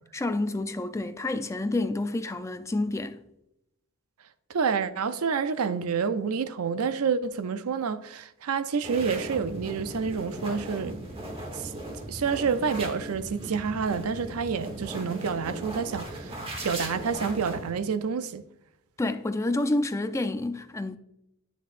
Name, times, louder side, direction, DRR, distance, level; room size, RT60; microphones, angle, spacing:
voice 1, 0.1-3.2 19.0-21.0, left 2 dB, 15° left, 0.4 m, -29 dB
voice 2, 4.5-11.0 11.5-11.7 12.1-18.4, right 5 dB, 75° right, 0.5 m, -28 dB
sound 1, 8.8-17.7, right 1 dB, 25° right, 1.2 m, -38 dB
9.4 x 6.5 x 2.5 m
head